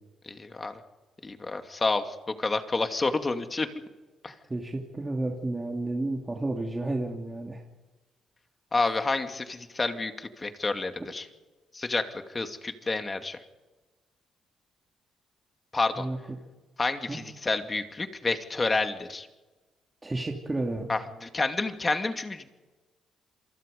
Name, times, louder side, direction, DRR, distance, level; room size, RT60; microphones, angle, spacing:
voice 1, 0.3-0.7 1.2-3.7 4.2-4.3 8.7-11.2 11.7-13.4 15.7-16.1 16.8-19.3 20.9-22.5, left 3 dB, 25° left, 6 dB, 2.4 m, -29 dB
voice 2, 4.5-7.6 16.0-16.2 17.1-17.2 20.0-20.9, right 2 dB, 20° right, 0 dB, 3.0 m, -31 dB
28.0 x 24.0 x 5.4 m, 1.2 s
cardioid pair, 90°, 0 cm